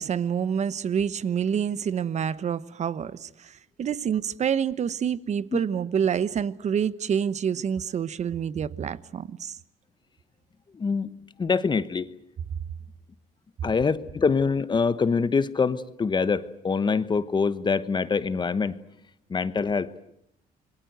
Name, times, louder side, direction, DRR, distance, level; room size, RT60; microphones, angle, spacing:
voice 1, 0.0-9.6, right 8 dB, 45° right, 1.0 m, -27 dB
voice 2, 10.7-11.1 11.4-12.1 13.6-18.8 19.3-20.0, left 5 dB, 25° left, 1.1 m, -25 dB
27.0 x 22.5 x 8.0 m
cardioid pair, 110°, 17 cm